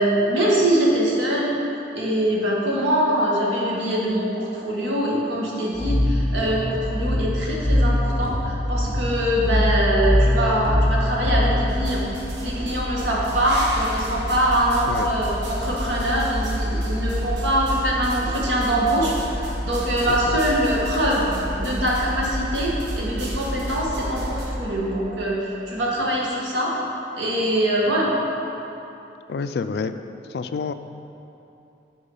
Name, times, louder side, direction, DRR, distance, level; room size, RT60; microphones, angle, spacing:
voice 1, 0.0-1.5 1.9-12.0 12.4-21.3 21.6-26.7 27.2-28.1, right 1 dB, 90° right, -4 dB, 1.6 m, -23 dB
sound 1, 5.7-11.8, left 1 dB, 30° right, 1.9 m, -22 dB
sound 2, 11.7-24.5, right 1 dB, 70° right, 1.0 m, -29 dB
voice 2, 20.1-20.4 29.3-30.0 30.3-30.7, left 5 dB, 60° left, 10 dB, 0.3 m, -28 dB
8.8 x 4.8 x 5.5 m, 2.9 s
head